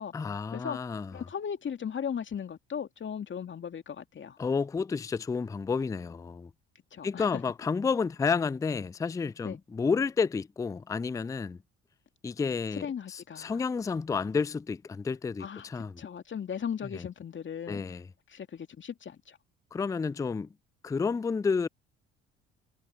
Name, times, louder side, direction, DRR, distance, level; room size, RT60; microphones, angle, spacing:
voice 1, 0.1-1.2 4.4-6.5 7.0-11.6 12.2-16.0 16.9-17.0 17.7-18.1 19.7-20.5 20.8-21.7, left 5 dB, 10° left, 0.4 m, -30 dB
voice 2, 1.1-4.4 6.9-7.4 9.4-9.6 12.8-13.6 15.4-15.7 16.0-17.8 18.3-19.4, left 7 dB, 40° left, 2.5 m, -37 dB
hypercardioid pair, 55°, 31 cm